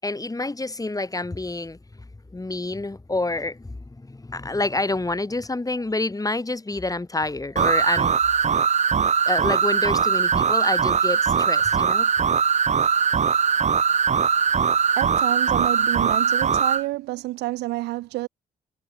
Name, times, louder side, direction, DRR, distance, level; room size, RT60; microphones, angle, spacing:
voice 1, 0.0-8.2 9.2-12.1, left 2 dB, 20° left, 7.1 m, -28 dB
sound 1, 7.6-16.8, right 7 dB, 40° right, 1.1 m, -21 dB
voice 2, 15.0-18.3, right 19 dB, 75° right, 3.6 m, -29 dB
hypercardioid pair, 45°, 17 cm